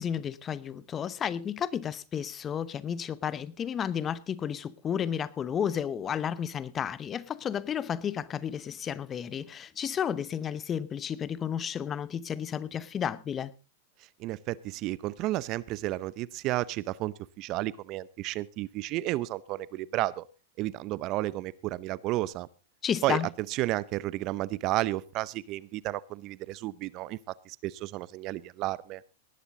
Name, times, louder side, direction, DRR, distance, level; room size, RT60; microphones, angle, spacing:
voice 1, 0.0-13.5 22.8-23.3, left 8 dB, 25° left, 0.8 m, -32 dB
voice 2, 14.2-20.2 20.6-22.5 23.0-23.2 23.5-27.2 27.5-29.0, right 17 dB, 45° right, 0.6 m, -32 dB
19.0 x 11.0 x 3.8 m
hypercardioid pair, 110°, 0 cm